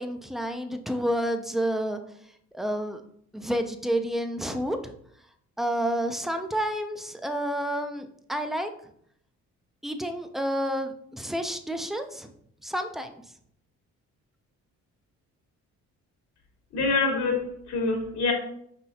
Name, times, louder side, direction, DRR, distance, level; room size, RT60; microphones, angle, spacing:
voice 1, 0.0-2.0 2.5-3.0 3.3-4.9 5.6-8.7 9.8-12.3 12.6-13.1, equal, ahead, 8 dB, 0.4 m, -29 dB
voice 2, 16.7-18.3, left 3 dB, 70° left, 2 dB, 1.2 m, -26 dB
5.5 x 3.1 x 2.8 m, 0.69 s
cardioid pair, 90°, 30 cm